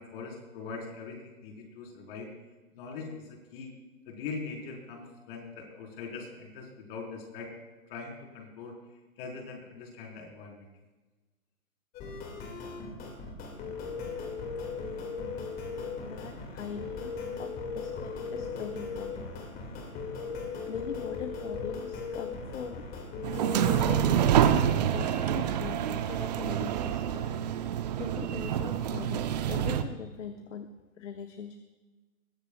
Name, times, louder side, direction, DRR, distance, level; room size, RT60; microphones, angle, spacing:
voice 1, 0.0-2.3 2.7-3.7 4.1-7.5 7.9-8.7 9.2-10.7, left 4 dB, 40° left, 0 dB, 4.3 m, -42 dB
sound 1, 11.9-24.0, left 4 dB, 20° left, 2.2 m, -38 dB
voice 2, 16.0-19.4 20.3-22.9 23.6-27.3 28.0-31.6, left 7 dB, 55° left, 7 dB, 1.0 m, -41 dB
sound 2, 23.2-29.8, right 10 dB, 30° right, 0.7 m, -27 dB
21.5 x 16.0 x 2.4 m, 1.2 s
hypercardioid pair, 135°, 44 cm